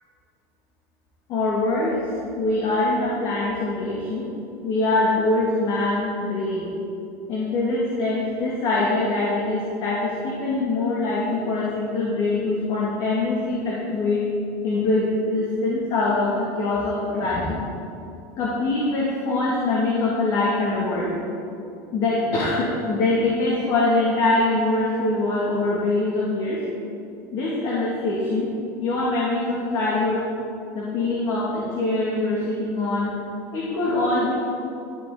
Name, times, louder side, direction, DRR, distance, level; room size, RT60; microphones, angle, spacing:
voice 1, 1.3-2.0 2.4-4.3 4.6-6.7 7.3-14.3 14.6-17.7 18.4-21.1 21.9-26.6 27.3-28.5 28.8-30.2 30.7-33.1 33.5-34.3, left 2 dB, 50° left, -5 dB, 2.5 m, -23 dB
12.5 x 11.0 x 4.0 m, 2.6 s
cardioid pair, 150°, 9 cm